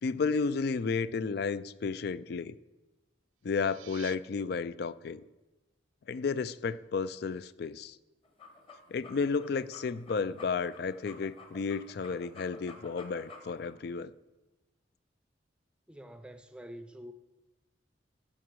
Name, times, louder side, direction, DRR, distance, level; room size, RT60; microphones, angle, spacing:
voice 1, 0.0-2.6 3.4-5.2 6.1-8.0 8.9-14.1, left 5 dB, 55° left, 0.3 m, -32 dB
sound 1, 3.3-4.2, right 15 dB, 85° right, 0.3 m, -50 dB
sound 2, 8.2-13.7, left 4 dB, 30° left, 1.2 m, -51 dB
voice 2, 15.9-17.1, equal, 5° right, 0.5 m, -46 dB
15.0 x 5.9 x 4.7 m
head